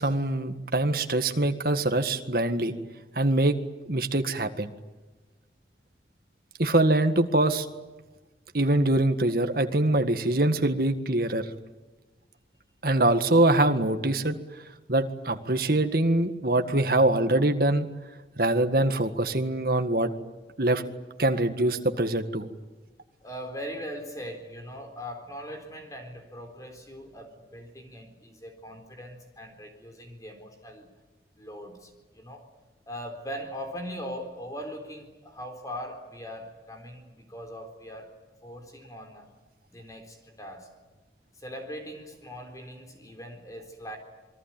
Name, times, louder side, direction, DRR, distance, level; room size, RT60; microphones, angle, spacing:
voice 1, 0.0-2.7 3.2-3.6 3.9-4.7 6.6-7.7 8.5-11.5 12.8-14.4 14.9-17.9 18.4-20.1 20.6-20.8 21.2-22.5, right 2 dB, 55° right, 7 dB, 1.8 m, -24 dB
voice 2, 23.2-30.9 31.4-32.5 32.9-38.1 38.4-39.3 39.7-40.7 41.3-44.0, equal, 20° left, 4 dB, 3.9 m, -40 dB
28.0 x 22.5 x 9.1 m, 1.2 s
head